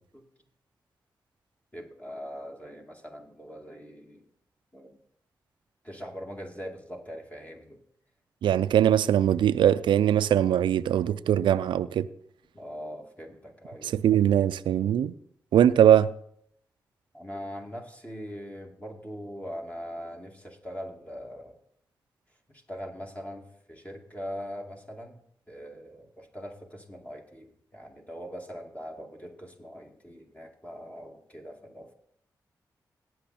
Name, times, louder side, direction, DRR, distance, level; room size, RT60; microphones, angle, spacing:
voice 1, 1.7-4.3 4.7-5.0 5.8-7.8 12.5-13.9 17.1-21.6 22.5-25.2 25.5-31.9, equal, 20° left, 2.3 m, -41 dB
voice 2, 8.4-12.1 13.8-15.1 15.5-16.1, right 10 dB, 85° right, 0.4 m, -21 dB
18.0 x 6.3 x 4.3 m
supercardioid pair, 40°, 8 cm